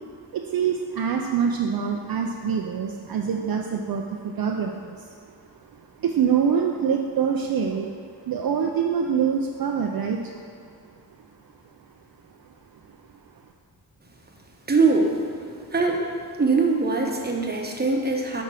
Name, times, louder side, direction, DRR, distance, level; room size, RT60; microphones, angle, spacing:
voice 1, 0.3-5.0 6.0-7.9 8.3-10.2, right 7 dB, 60° right, 2 dB, 0.5 m, -25 dB
voice 2, 14.7-15.1 15.7-16.0 16.4-18.4, right 4 dB, 25° right, 1 dB, 0.9 m, -22 dB
6.0 x 3.5 x 5.7 m, 2.2 s
cardioid pair, 65°, 41 cm